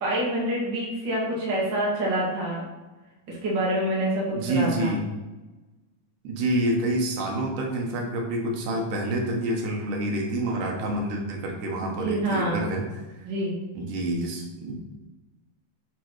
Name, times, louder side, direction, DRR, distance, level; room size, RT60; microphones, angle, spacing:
voice 1, 0.0-2.7 3.3-4.9 12.0-12.6 13.3-13.5, right 1 dB, 40° right, -5 dB, 2.1 m, -26 dB
voice 2, 4.4-5.0 6.2-13.0 13.8-14.7, right 1 dB, 80° right, 0 dB, 2.6 m, -27 dB
8.6 x 4.1 x 3.1 m, 1.1 s
omnidirectional pair, 3.6 m